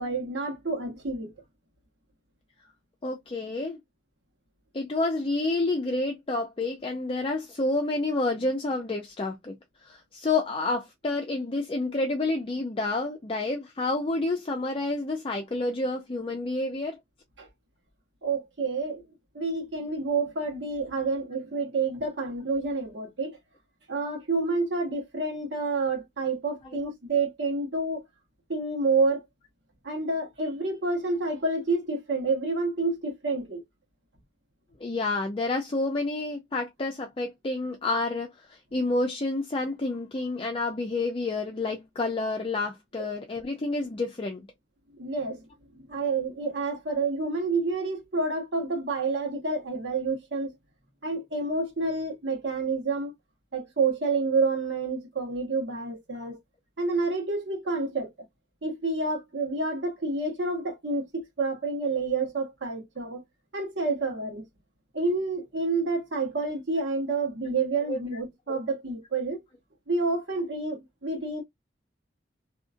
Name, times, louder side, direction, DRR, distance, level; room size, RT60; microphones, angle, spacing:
voice 1, 0.0-1.3 17.4-17.5 18.2-19.0 19.3-23.4 23.9-28.0 28.5-29.2 29.8-33.6 43.0-43.1 45.0-45.4 45.8-50.5 51.0-53.1 53.5-56.4 56.8-58.1 58.6-63.2 63.5-64.4 64.9-69.4 69.9-71.4, right 3 dB, 90° right, 1.3 m, -29 dB
voice 2, 3.0-3.8 4.7-9.5 9.8-17.0 26.6-26.8 34.8-44.5 56.1-56.3 67.9-68.0 68.5-68.6, left 2 dB, 30° left, 0.4 m, -29 dB
2.8 x 2.5 x 2.5 m
head